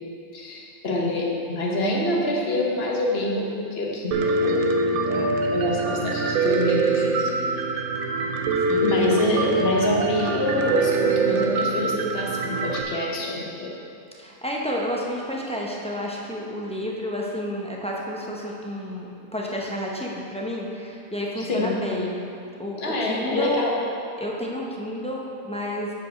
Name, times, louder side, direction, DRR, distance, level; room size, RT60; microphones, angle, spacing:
voice 1, 0.3-7.3 8.8-13.7 21.4-21.8 22.8-23.8, left 1 dB, 45° left, -2 dB, 1.3 m, -26 dB
Piano, 4.1-12.8, right 3 dB, 75° right, 1.1 m, -24 dB
voice 2, 8.6-9.0 14.2-22.2 22.6-23.7 24.2-25.9, equal, 10° left, -3 dB, 0.3 m, -30 dB
8.3 x 5.4 x 5.1 m, 2.5 s
omnidirectional pair, 1.6 m